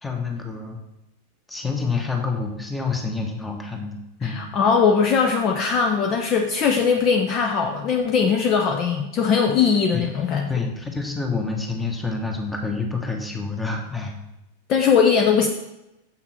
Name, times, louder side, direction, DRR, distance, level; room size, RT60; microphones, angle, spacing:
voice 1, 0.0-0.8 1.5-4.5 9.9-10.0 10.5-14.1, left 4 dB, 10° left, 2 dB, 1.2 m, -28 dB
voice 2, 4.2-10.5 14.7-15.5, left 6 dB, 35° left, 3 dB, 0.7 m, -20 dB
7.1 x 5.8 x 4.3 m, 0.92 s
figure-of-eight pair, 90°, 0 cm